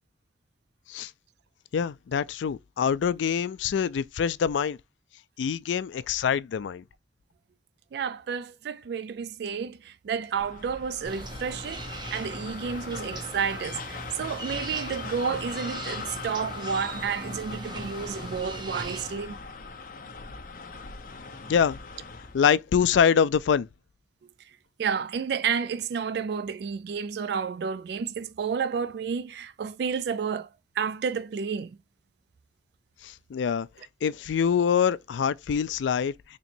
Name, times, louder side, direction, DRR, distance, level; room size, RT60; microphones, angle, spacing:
voice 1, 1.7-4.8 5.4-6.8 21.5-21.8 22.3-23.7 33.0-33.7 34.0-36.4, left 7 dB, 90° left, 0.3 m, -25 dB
voice 2, 7.9-19.4 24.8-30.5 30.8-31.8, right 6 dB, 65° right, 0.3 m, -31 dB
sound 1, 10.3-22.4, left 4 dB, 50° left, 0.7 m, -40 dB
sound 2, 11.0-19.1, right 2 dB, 25° right, 0.7 m, -40 dB
4.3 x 2.9 x 2.6 m
head